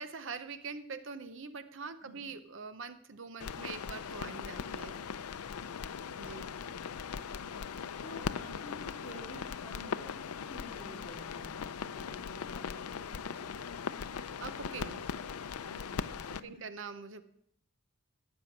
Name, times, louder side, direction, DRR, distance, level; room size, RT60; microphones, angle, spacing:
voice 1, 0.0-5.0 6.2-6.5 14.1-15.1 16.3-17.2, right 5 dB, 55° right, 11 dB, 0.6 m, -44 dB
sound 1, 3.4-16.4, left 6 dB, 85° left, 0.5 m, -39 dB
voice 2, 5.6-6.7 8.0-14.1 15.6-16.5, left 1 dB, 30° left, -3 dB, 2.9 m, -52 dB
13.5 x 8.8 x 5.9 m, 0.72 s
head